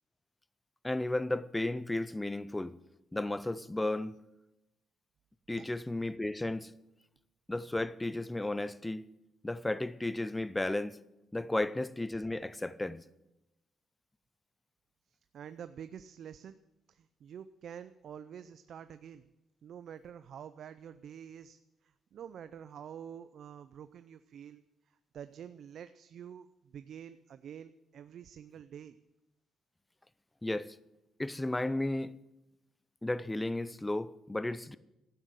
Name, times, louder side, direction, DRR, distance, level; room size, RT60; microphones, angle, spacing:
voice 1, 0.8-2.8 3.1-4.1 5.5-6.7 7.5-9.0 9.4-11.0 11.3-13.0 30.4-30.7 31.2-32.1 33.0-34.8, left 2 dB, 10° left, 0.6 m, -34 dB
voice 2, 15.1-16.6 16.9-19.3 19.6-29.0, right 8 dB, 65° right, 0.5 m, -48 dB
12.5 x 9.3 x 7.8 m
cardioid pair, 90°, 0 cm